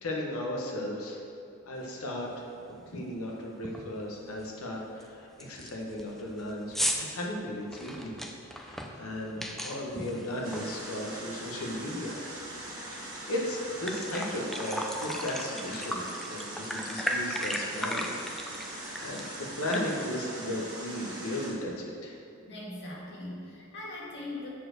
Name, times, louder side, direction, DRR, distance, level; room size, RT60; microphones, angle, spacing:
voice 1, 0.0-1.2 1.7-8.2 8.6-12.1 12.9-18.1 18.4-22.1, left 1 dB, 80° left, -1 dB, 1.2 m, -36 dB
sound 1, 2.0-2.1 2.6-2.9 3.1-3.2 3.6-4.0 4.4-4.5 5.0-5.1 5.4-11.3 11.7-13.0 13.3-13.4 13.7-20.1, equal, ahead, 0.5 m, -36 dB
sound 2, 10.4-21.5, right 1 dB, 20° right, 1.6 m, -41 dB
voice 2, 22.4-24.5, left 2 dB, 55° left, -5 dB, 2.0 m, -40 dB
7.6 x 4.4 x 6.3 m, 2.5 s
head